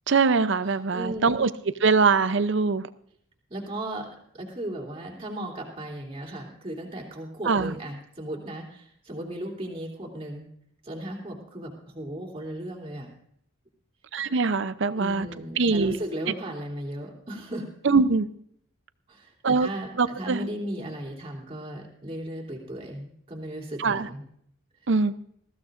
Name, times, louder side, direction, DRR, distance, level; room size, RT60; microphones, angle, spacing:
voice 1, 0.1-1.5 1.8-2.9 7.5-7.8 14.1-15.3 15.6-16.0 17.8-18.3 19.4-19.7 20.0-20.5 23.8-24.1 24.9-25.1, right 4 dB, 60° right, 14 dB, 0.6 m, -22 dB
voice 2, 0.9-1.5 3.5-4.1 4.3-10.5 10.8-13.1 15.0-17.7 19.1-24.2, right 1 dB, 25° right, -1 dB, 3.1 m, -36 dB
20.5 x 15.0 x 2.5 m, 0.68 s
head